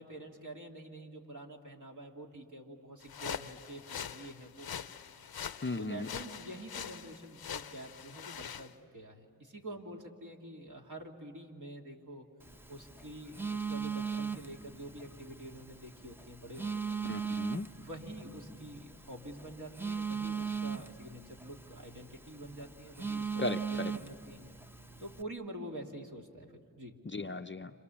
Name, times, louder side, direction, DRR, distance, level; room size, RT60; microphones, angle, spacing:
voice 1, 0.0-4.8 5.7-12.3 12.7-17.0 17.8-24.4 25.0-27.0, right 1 dB, 50° right, 0 dB, 2.7 m, -47 dB
sound 1, 3.0-8.7, left 8 dB, 70° left, 0.7 m, -43 dB
voice 2, 5.6-6.1 17.1-17.7 23.4-23.9 27.1-27.7, left 2 dB, 30° left, 8 dB, 0.6 m, -36 dB
Telephone, 12.4-25.2, right 6 dB, 5° right, 0.8 m, -39 dB
29.5 x 27.0 x 7.1 m, 2.3 s
cardioid pair, 50°, 38 cm